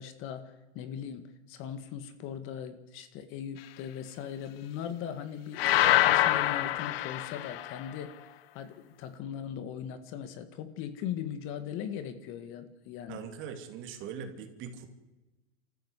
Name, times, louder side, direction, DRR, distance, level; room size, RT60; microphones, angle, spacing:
voice 1, 0.0-8.2 8.5-13.3, left 9 dB, 40° left, 10 dB, 1.8 m, -39 dB
sound 1, 5.6-7.8, left 14 dB, 60° left, 1.1 m, -25 dB
voice 2, 13.1-14.9, right 7 dB, 35° right, 7 dB, 2.8 m, -41 dB
26.0 x 14.5 x 8.2 m, 1.1 s
hypercardioid pair, 135°, 33 cm